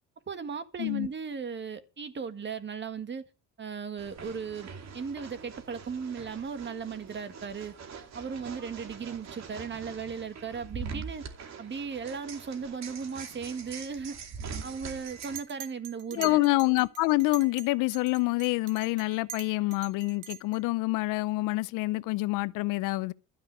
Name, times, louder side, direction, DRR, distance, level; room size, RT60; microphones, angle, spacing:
voice 1, 0.3-3.3 3.6-7.7 8.1-11.2 11.6-14.2 14.6-16.5, right 6 dB, 35° right, 1.7 m, -37 dB
sound 1, 4.0-15.4, right 5 dB, 60° right, 2.7 m, -43 dB
Chink clink, 15.1-17.7 17.9-20.6, right 10 dB, 85° right, 2.1 m, -44 dB
voice 2, 16.1-23.1, left 21 dB, 85° left, 0.7 m, -27 dB
13.0 x 5.5 x 9.3 m
cardioid pair, 90°, 31 cm